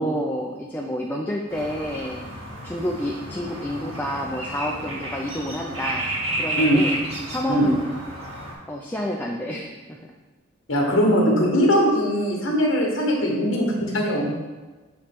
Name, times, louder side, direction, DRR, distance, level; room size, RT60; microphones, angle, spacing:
voice 1, 0.0-2.2 2.6-6.0 6.4-7.0 7.3-8.0 8.7-10.0, equal, 10° left, 0 dB, 0.3 m, -29 dB
sound 1, 1.5-8.5, right 1 dB, 80° right, 1.7 m, -32 dB
voice 2, 10.7-14.3, equal, 70° left, -1 dB, 1.1 m, -20 dB
6.5 x 3.1 x 5.9 m, 1.3 s
head